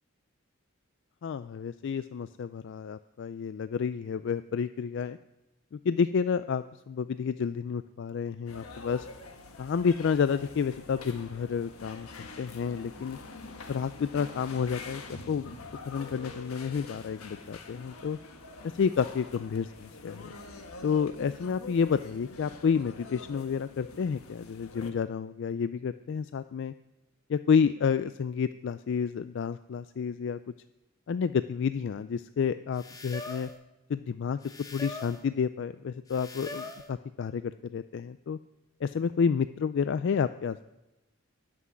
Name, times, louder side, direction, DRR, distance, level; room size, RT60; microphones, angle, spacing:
voice 1, 1.2-5.2 5.7-9.1 9.6-12.1 12.4-13.2 13.7-15.5 15.9-18.2 18.6-20.3 20.8-26.7 27.3-30.4 31.1-33.5 33.9-34.4 34.7-38.4 38.8-40.7, left 6 dB, 55° left, 13 dB, 0.3 m, -30 dB
sound 1, 8.5-24.9, left 3 dB, 90° left, 1.4 m, -46 dB
sound 2, 32.7-33.6 34.4-35.2 36.1-36.9, left 2 dB, 15° left, 1.0 m, -42 dB
13.0 x 6.1 x 9.6 m, 0.98 s
head